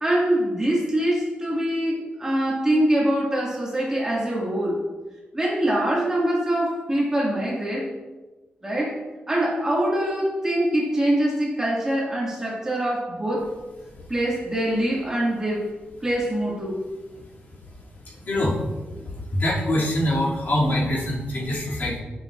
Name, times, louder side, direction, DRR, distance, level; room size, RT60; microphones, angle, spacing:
voice 1, 0.0-4.8 5.3-7.9 8.6-9.0 9.3-13.5 14.1-15.7 16.0-16.8, right 1 dB, 15° right, -5 dB, 2.0 m, -24 dB
voice 2, 18.0-18.7 19.0-22.0, left 1 dB, 55° left, -6 dB, 2.5 m, -24 dB
10.5 x 6.5 x 2.5 m, 1.2 s
wide cardioid pair, 120°, 4 cm